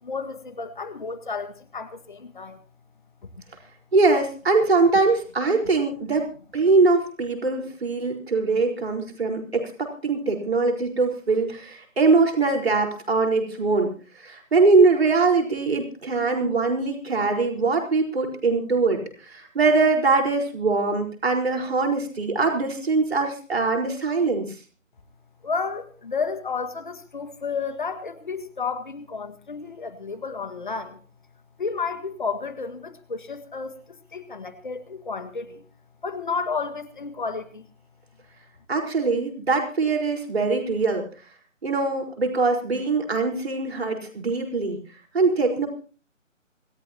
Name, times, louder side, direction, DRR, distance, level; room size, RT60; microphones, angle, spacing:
voice 1, 0.0-2.6 3.2-3.4 25.4-31.0 31.6-35.6 36.0-37.7, left 5 dB, 40° left, 10 dB, 1.8 m, -32 dB
voice 2, 3.9-6.3 6.5-13.9 14.2-24.6 38.7-41.0 41.6-44.8 45.1-45.7, right 3 dB, 50° right, 2 dB, 4.6 m, -22 dB
26.0 x 14.0 x 2.9 m, 0.39 s
figure-of-eight pair, 155°, 39 cm